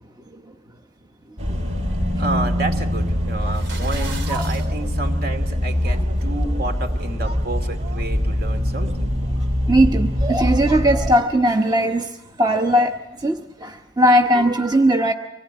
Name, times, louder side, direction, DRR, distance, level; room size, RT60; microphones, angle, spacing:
sound 1, 1.4-11.2, equal, 40° right, 3.4 m, -23 dB
voice 1, 2.2-9.1, right 2 dB, 55° right, 7 dB, 2.6 m, -30 dB
sound 2, 3.4-4.7, right 4 dB, 75° right, 4.4 m, -36 dB
voice 2, 9.7-12.1 12.4-15.1, equal, 20° right, 4 dB, 0.9 m, -18 dB
25.0 x 18.5 x 9.2 m, 0.99 s
head